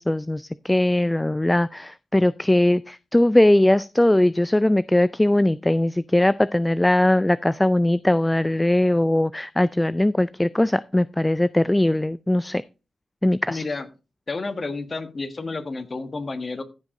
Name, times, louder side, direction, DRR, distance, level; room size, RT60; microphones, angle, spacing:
voice 1, 0.0-12.6 13.2-13.7, left 1 dB, 15° left, 17 dB, 0.4 m, -20 dB
voice 2, 13.5-13.9 14.3-16.6, left 3 dB, 50° left, 10 dB, 1.5 m, -30 dB
14.5 x 5.1 x 3.8 m, 0.30 s
cardioid pair, 50°, 0 cm